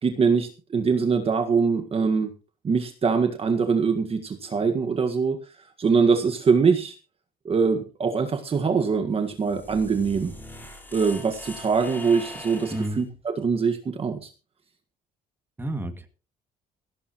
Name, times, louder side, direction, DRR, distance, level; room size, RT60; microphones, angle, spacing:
voice 1, 0.0-2.3 2.6-5.4 5.8-6.9 7.4-10.3 10.9-14.3, right 5 dB, 35° right, 6 dB, 1.6 m, -23 dB
sound 1, 9.2-13.0, left 1 dB, 10° left, 4.9 m, -41 dB
voice 2, 12.7-13.1 15.6-16.1, right 1 dB, 15° right, 6 dB, 2.2 m, -30 dB
16.5 x 15.5 x 3.0 m, 0.35 s
cardioid pair, 110°, 17 cm